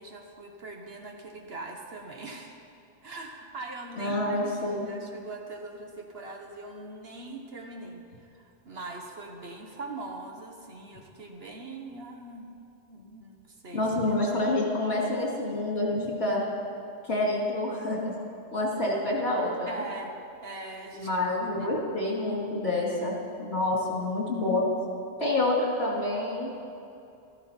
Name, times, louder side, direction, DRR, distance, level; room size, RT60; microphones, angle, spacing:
voice 1, 0.0-2.6 3.0-12.6 12.9-13.9 19.7-20.1 20.4-21.2 21.6-21.7, right 2 dB, 60° right, 2 dB, 1.4 m, -41 dB
voice 2, 4.0-4.9 13.7-16.4 17.1-18.1 18.5-19.8 21.0-23.1 23.4-24.7 25.2-26.5, left 2 dB, 65° left, -3 dB, 2.7 m, -27 dB
13.5 x 13.5 x 4.4 m, 2.6 s
omnidirectional pair, 1.2 m